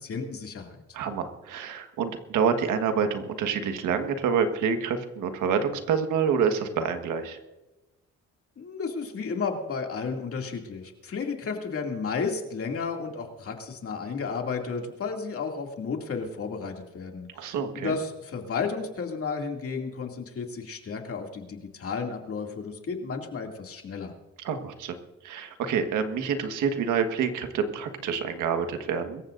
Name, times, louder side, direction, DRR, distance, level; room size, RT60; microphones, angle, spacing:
voice 1, 0.0-0.8 8.6-24.1, left 5 dB, 50° left, 2 dB, 2.5 m, -33 dB
voice 2, 0.9-7.4 17.3-17.9 24.4-24.9 25.2-29.2, right 6 dB, 85° right, 7 dB, 1.6 m, -27 dB
23.5 x 14.5 x 2.6 m, 1.1 s
cardioid pair, 90°, 30 cm